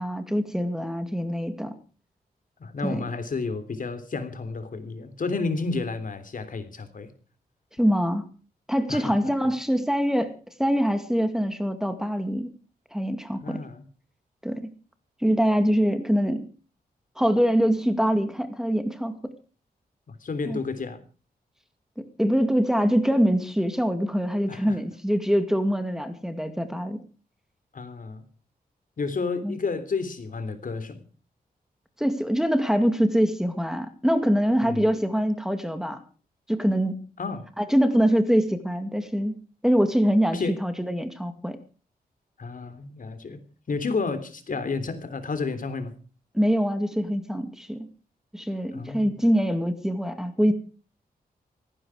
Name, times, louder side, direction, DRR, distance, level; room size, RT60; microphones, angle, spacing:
voice 1, 0.0-1.8 2.8-3.0 7.8-8.3 8.7-10.3 10.6-12.5 12.9-13.6 14.4-14.7 15.2-16.4 17.2-19.2 20.5-20.6 22.0-27.0 29.4-29.6 32.0-36.0 36.5-37.0 37.6-39.4 39.6-41.6 46.3-47.9 48.3-50.5, equal, 5° right, 9 dB, 2.2 m, -24 dB
voice 2, 2.6-7.1 8.9-9.3 13.4-13.9 20.1-21.0 24.5-24.8 27.7-28.2 29.0-31.0 34.6-34.8 37.2-37.5 40.3-40.6 42.4-43.4 43.7-45.9 48.7-49.2, left 4 dB, 60° left, 11 dB, 3.4 m, -31 dB
18.0 x 16.0 x 5.0 m, 0.38 s
wide cardioid pair, 90°, 16 cm